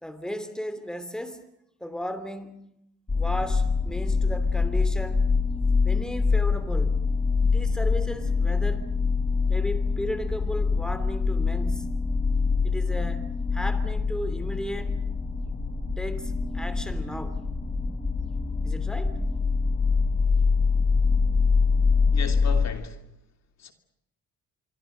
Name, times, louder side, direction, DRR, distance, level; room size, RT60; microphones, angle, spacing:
voice 1, 0.0-1.4 1.8-2.7 3.1-5.3 5.8-7.0 7.5-8.9 9.5-11.9 12.6-13.3 13.5-15.0 16.0-17.4 18.6-19.2, equal, ahead, 3.0 m, -35 dB
sound 1, 3.1-22.7, left 4 dB, 25° left, 6.1 m, -24 dB
voice 2, 22.1-23.1 23.6-23.7, left 6 dB, 60° left, 2.9 m, -36 dB
26.0 x 24.0 x 6.6 m
cardioid pair, 90°, 30 cm